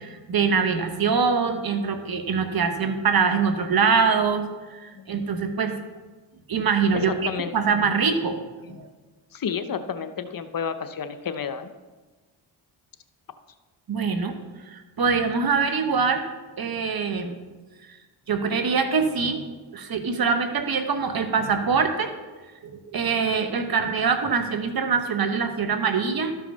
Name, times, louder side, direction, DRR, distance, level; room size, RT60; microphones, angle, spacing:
voice 1, 0.0-5.8 6.5-7.1 7.5-8.5 8.8-8.9 13.9-14.3 14.7-16.3 16.6-17.4 18.3-22.1 22.6-26.3, right 5 dB, 50° right, 7 dB, 1.3 m, -24 dB
voice 2, 6.9-7.5 9.3-11.7, left 6 dB, 45° left, 10 dB, 0.8 m, -30 dB
12.5 x 5.7 x 5.5 m, 1.3 s
cardioid pair, 65°, 47 cm